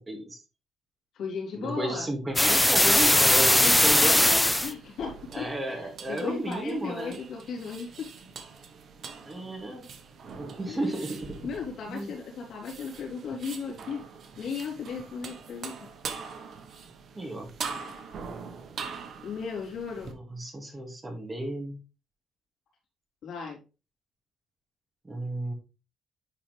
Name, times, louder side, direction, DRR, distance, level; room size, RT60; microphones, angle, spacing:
voice 1, 0.1-0.4 1.5-4.5 5.3-7.2 9.3-9.9 10.2-11.4 11.9-12.1 17.1-17.5 20.0-21.8 25.0-25.5, right 1 dB, 20° right, 2 dB, 2.3 m, -33 dB
voice 2, 1.1-2.1 3.6-3.8 4.6-8.1 10.7-10.9 11.4-14.0 14.4-15.8 19.2-20.2 20.6-20.8 23.2-23.6, left 5 dB, 70° left, -2 dB, 3.7 m, -36 dB
sound 1, 2.4-4.7, left 1 dB, 10° left, 0.7 m, -20 dB
sound 2, 4.4-20.1, right 5 dB, 60° right, 1.3 m, -43 dB
10.0 x 4.3 x 3.4 m, 0.31 s
cardioid pair, 90°, 0 cm